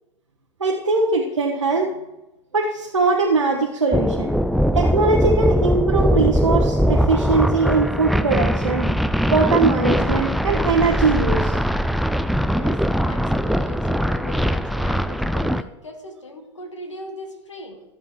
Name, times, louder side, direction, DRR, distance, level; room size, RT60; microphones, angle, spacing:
voice 1, 0.6-1.9 2.5-4.3 4.7-8.9 9.3-11.5, right 3 dB, 90° right, -1 dB, 0.8 m, -21 dB
sound 1, 3.9-15.6, equal, ahead, 0.3 m, -21 dB
voice 2, 12.5-17.8, left 2 dB, 90° left, 4 dB, 1.4 m, -39 dB
14.5 x 7.5 x 3.0 m, 1.0 s
figure-of-eight pair, 80°, 15 cm